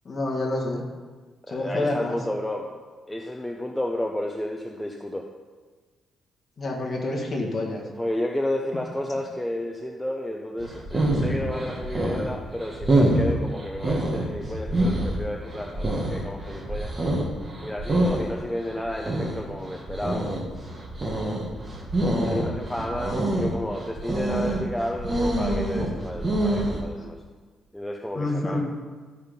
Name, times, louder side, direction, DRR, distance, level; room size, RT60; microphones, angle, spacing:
voice 1, 0.1-0.8 1.5-2.2 6.6-7.8 22.1-22.5 27.0-27.1 28.2-28.6, left 2 dB, 30° left, -1 dB, 1.9 m, -28 dB
voice 2, 1.5-2.8 3.1-5.3 8.0-16.9 17.6-20.3 22.2-27.2 27.7-28.6, left 1 dB, 5° left, 1 dB, 0.6 m, -31 dB
sound 1, 10.6-26.8, right 1 dB, 20° right, 1.4 m, -26 dB
13.0 x 5.6 x 5.2 m, 1.4 s
cardioid pair, 155°, 0 cm